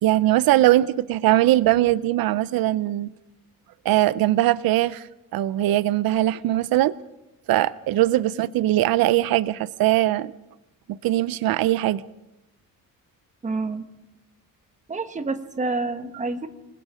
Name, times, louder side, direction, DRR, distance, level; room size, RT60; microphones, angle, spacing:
voice 1, 0.0-3.1 3.8-5.1 5.3-6.9 7.5-10.3 10.9-12.0, right 15 dB, 90° right, 0.7 m, -21 dB
voice 2, 13.4-13.8 14.9-16.5, right 3 dB, 20° right, 1.4 m, -28 dB
26.5 x 20.5 x 5.1 m
cardioid pair, 170°, 35 cm